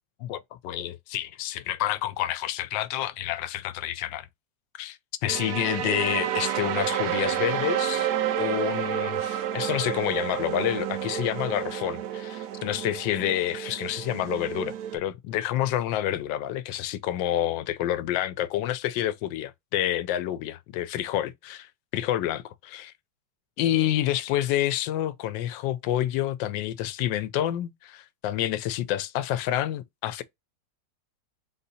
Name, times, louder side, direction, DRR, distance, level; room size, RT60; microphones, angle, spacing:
voice 1, 0.2-4.3 4.8-8.1 8.4-22.9 23.6-30.2, left 12 dB, 80° left, 1.3 m, -28 dB
sound 1, 5.3-15.0, right 10 dB, 70° right, 1.0 m, -30 dB
4.1 x 2.7 x 4.1 m
omnidirectional pair, 2.0 m